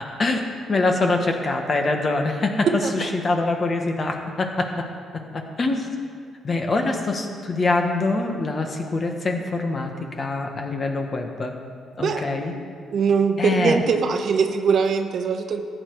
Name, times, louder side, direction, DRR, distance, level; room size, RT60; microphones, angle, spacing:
voice 1, 0.7-2.7 2.9-4.9 5.3-5.9 6.4-9.9 10.2-11.5 12.0-12.5 13.4-13.8, left 3 dB, 40° left, 4 dB, 1.5 m, -24 dB
voice 2, 2.7-3.1 12.0-12.3 12.9-15.7, right 5 dB, 60° right, 7 dB, 0.9 m, -22 dB
14.5 x 9.2 x 4.7 m, 2.1 s
cardioid pair, 90°, 0 cm